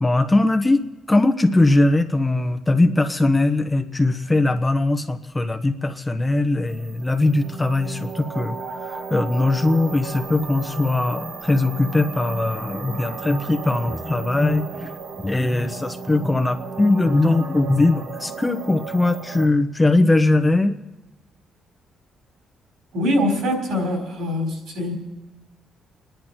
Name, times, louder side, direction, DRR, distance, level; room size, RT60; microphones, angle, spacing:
voice 1, 0.0-8.6 8.8-14.9 15.2-20.8, left 2 dB, 15° left, 7 dB, 1.0 m, -20 dB
sound 1, 6.7-19.5, right 5 dB, 65° right, 1.6 m, -35 dB
voice 2, 22.9-24.9, left 1 dB, 85° right, 1 dB, 4.5 m, -23 dB
28.0 x 10.5 x 4.5 m, 1.1 s
cardioid pair, 90°, 0 cm